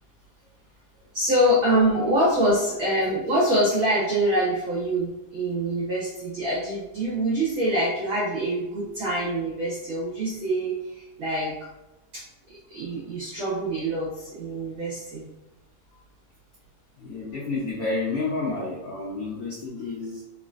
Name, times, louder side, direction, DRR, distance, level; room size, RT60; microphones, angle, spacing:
voice 1, 1.1-11.5 12.1-12.2 12.5-15.2, right 1 dB, 60° right, -8 dB, 1.3 m, -25 dB
voice 2, 1.7-2.1 17.0-20.2, left 3 dB, 80° left, -6 dB, 1.2 m, -30 dB
4.4 x 4.0 x 2.5 m, 0.96 s
omnidirectional pair, 3.9 m